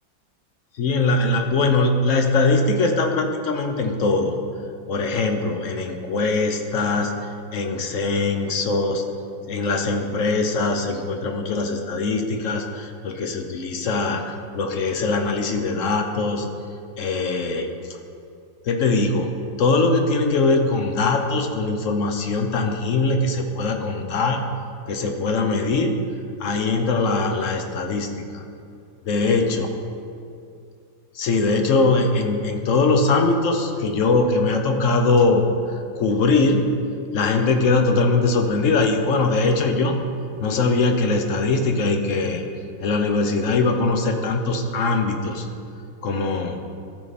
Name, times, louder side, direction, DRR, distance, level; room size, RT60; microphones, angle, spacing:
voice 1, 0.8-4.4 4.9-7.2 7.5-9.0 9.5-16.5 17.0-17.7 18.6-19.3 19.6-24.4 24.9-25.9 26.4-28.4 29.1-29.7 31.1-36.7 37.1-40.0 40.4-42.4 42.8-45.5 46.0-46.6, left 3 dB, 60° left, 4 dB, 0.9 m, -21 dB
14.5 x 6.0 x 4.1 m, 2.5 s
omnidirectional pair, 2.1 m